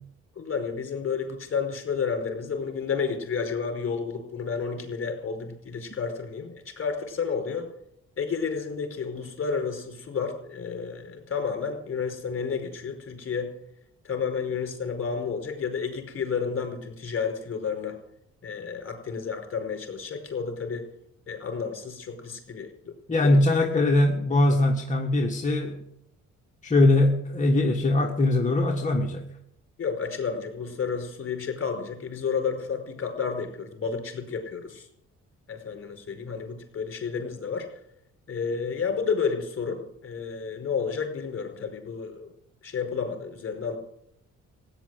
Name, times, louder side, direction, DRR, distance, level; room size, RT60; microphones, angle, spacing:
voice 1, 0.3-7.7 8.2-13.5 14.0-18.0 18.4-20.9 21.3-23.4 29.8-34.9 35.5-37.7 38.3-42.3 42.6-43.8, left 5 dB, 45° left, 4 dB, 4.9 m, -31 dB
voice 2, 23.1-25.8 26.6-29.2, left 2 dB, 25° left, 1 dB, 1.6 m, -21 dB
16.0 x 10.0 x 7.8 m, 0.77 s
cardioid pair, 90°, 30 cm